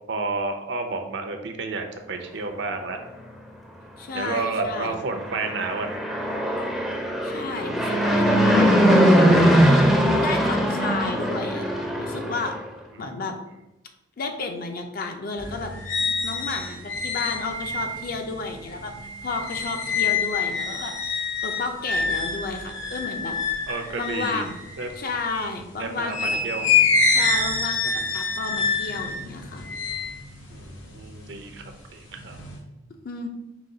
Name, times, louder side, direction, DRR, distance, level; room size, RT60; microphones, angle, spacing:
voice 1, 0.1-3.0 4.1-6.1 13.0-13.1 23.7-24.4 24.8-24.9 25.8-26.7 30.5-32.4, right 3 dB, 65° right, 5 dB, 0.5 m, -31 dB
voice 2, 4.0-5.0 7.2-8.7 10.1-11.6 12.0-12.6 13.0-13.4 14.2-15.7 16.0-18.9 19.2-23.4 24.0-24.6 24.9-26.4 27.1-29.7 33.0-33.3, left 3 dB, 50° left, 5 dB, 0.5 m, -32 dB
Fixed-wing aircraft airplane, 5.2-12.6, equal, ahead, 0.4 m, -20 dB
sound 1, 15.4-25.5 26.1-31.6 32.0-32.6, left 4 dB, 85° left, 1.0 m, -26 dB
4.9 x 2.3 x 3.8 m, 0.95 s
head